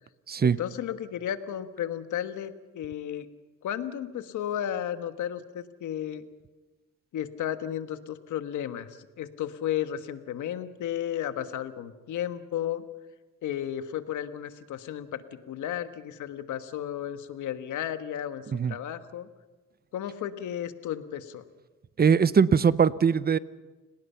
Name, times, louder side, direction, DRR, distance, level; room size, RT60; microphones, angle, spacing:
voice 1, 0.4-3.3 3.6-6.2 7.1-12.8 13.4-19.3 19.9-21.4, left 10 dB, 75° left, 10 dB, 1.5 m, -33 dB
voice 2, 22.0-23.4, right 6 dB, 30° right, 17 dB, 0.8 m, -21 dB
29.5 x 19.0 x 5.7 m, 1.2 s
cardioid pair, 90°, 30 cm